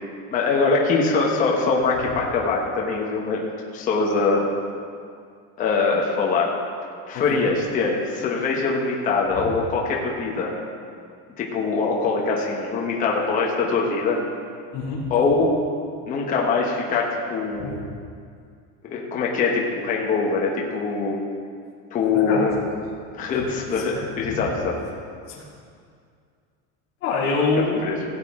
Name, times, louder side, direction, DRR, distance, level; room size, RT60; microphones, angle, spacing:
voice 1, 0.3-4.4 5.6-6.5 7.1-10.5 11.4-14.2 15.1-15.5 16.1-17.7 18.8-21.2 21.9-22.6 23.1-24.7 27.9-28.0, left 4 dB, 25° left, -2 dB, 1.1 m, -23 dB
voice 2, 7.1-7.4 14.7-15.1 17.6-17.7 22.1-22.4 23.3-23.4 24.2-24.4 25.3-25.4 27.0-27.9, left 4 dB, 40° left, -9 dB, 2.6 m, -25 dB
17.0 x 8.3 x 3.7 m, 2.2 s
cardioid pair, 175°, 34 cm